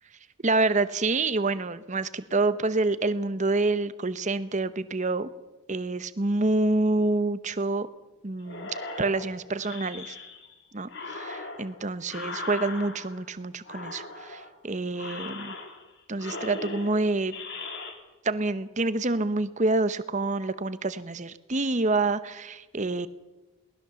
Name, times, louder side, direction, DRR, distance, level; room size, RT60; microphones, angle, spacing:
voice 1, 0.4-5.3 5.7-7.9 8.2-8.7 9.0-10.2 10.7-15.5 16.1-17.3 18.2-23.1, right 2 dB, 35° right, 14 dB, 0.8 m, -27 dB
sound 1, 8.5-10.5 10.9-13.3 13.6-14.5 14.9-17.9, left 3 dB, 50° left, 2.8 m, -39 dB
22.0 x 19.0 x 7.0 m, 1.1 s
head